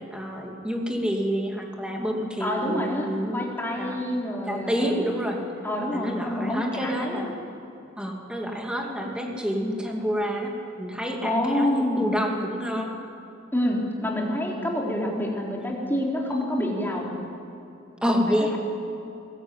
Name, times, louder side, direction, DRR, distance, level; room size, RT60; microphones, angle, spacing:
voice 1, 0.0-3.5 3.8-4.0 4.5-5.4 5.9-7.3 8.0-12.9 18.0-18.6, equal, 5° right, 1 dB, 2.7 m, -28 dB
voice 2, 2.4-5.1 5.6-7.3 11.2-12.1 13.5-17.1 18.3-18.6, left 1 dB, 10° left, -2 dB, 3.7 m, -27 dB
20.5 x 18.0 x 9.1 m, 2.9 s
head